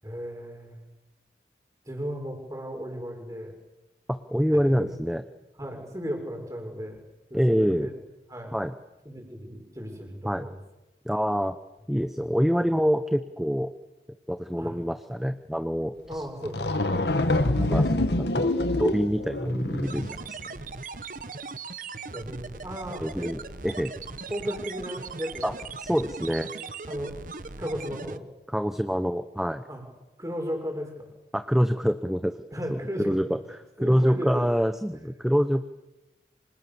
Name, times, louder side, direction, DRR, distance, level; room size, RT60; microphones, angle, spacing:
voice 1, 0.0-0.8 1.9-3.6 4.6-5.0 5.6-7.0 7.3-7.9 8.3-8.6 9.0-10.6 14.6-14.8 16.1-16.6 22.1-23.3 24.3-25.5 26.9-27.2 27.6-28.2 29.7-29.8 30.2-31.1 32.5-33.2 33.8-34.5 35.0-35.1, equal, 20° right, 3 dB, 6.2 m, -35 dB
voice 2, 4.1-5.2 7.3-7.9 8.5-8.7 10.2-10.5 11.0-11.5 11.9-13.7 14.3-16.2 17.4-20.4 23.0-23.9 25.4-25.5 25.8-26.5 28.5-29.6 31.3-32.3 32.7-32.8 33.0-33.4 33.8-35.6, equal, ahead, 9 dB, 0.9 m, -26 dB
sound 1, 16.1-16.2 16.4-20.2, left 1 dB, 70° left, 2.0 m, -26 dB
sound 2, 19.8-28.2, right 4 dB, 45° right, 1.2 m, -39 dB
29.5 x 26.5 x 7.1 m, 1.0 s
head